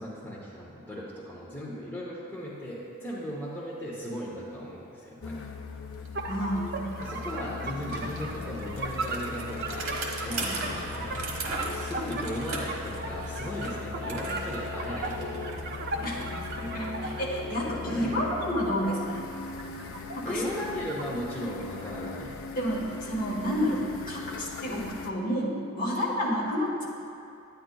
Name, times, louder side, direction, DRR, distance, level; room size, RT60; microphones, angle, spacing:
voice 1, 0.0-5.4 7.0-11.2 11.7-15.6 17.9-18.2 20.2-22.3, equal, 10° left, -7 dB, 0.8 m, -37 dB
sound 1, 5.2-25.1, left 4 dB, 75° left, 0.5 m, -39 dB
Bicycle, 5.6-5.7 5.9-18.8, right 2 dB, 75° right, 1.1 m, -40 dB
sound 2, 6.1-17.6 18.0-20.5 20.8-21.6, right 3 dB, 50° right, 0.5 m, -38 dB
voice 2, 6.3-7.1 10.4-10.6 16.0-16.2 16.6-19.2 20.2-20.4 22.5-26.9, equal, 40° left, -3 dB, 1.2 m, -30 dB
10.5 x 9.2 x 2.3 m, 2.6 s
head